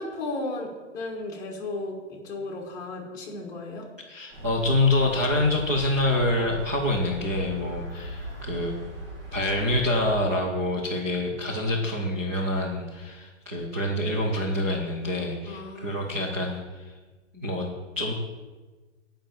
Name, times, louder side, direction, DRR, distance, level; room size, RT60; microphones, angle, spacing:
voice 1, 0.0-3.9 15.5-16.2, left 2 dB, 10° left, -2 dB, 1.4 m, -35 dB
voice 2, 4.1-8.7 9.3-16.9 17.3-17.7 18.0-18.1, left 1 dB, 15° right, -2 dB, 0.4 m, -26 dB
sound 1, 4.3-10.1, right 1 dB, 45° right, 2.4 m, -39 dB
9.7 x 5.2 x 7.1 m, 1.3 s
hypercardioid pair, 165°, 37 cm